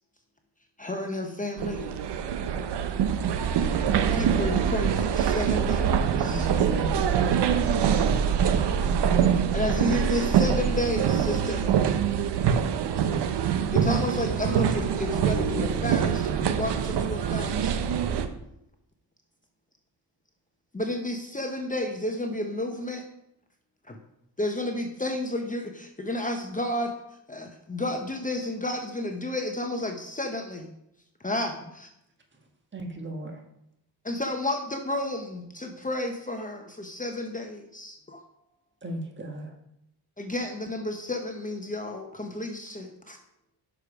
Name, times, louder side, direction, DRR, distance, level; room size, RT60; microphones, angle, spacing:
voice 1, 0.8-1.9 4.1-6.5 9.5-11.7 13.7-17.8 20.7-23.0 23.9-24.0 24.4-26.9 27.3-30.7 31.2-31.9 34.0-38.2 40.2-43.2, left 1 dB, 20° left, 3 dB, 0.9 m, -31 dB
sound 1, 1.6-18.3, right 8 dB, 75° right, 0.7 m, -24 dB
voice 2, 3.0-4.2 13.0-13.5, right 3 dB, 50° right, 0 dB, 2.2 m, -52 dB
voice 3, 6.2-7.4 32.7-33.4 38.8-39.5, right 1 dB, 25° right, 3 dB, 1.5 m, -36 dB
6.5 x 5.0 x 4.9 m, 0.80 s
cardioid pair, 65°, 41 cm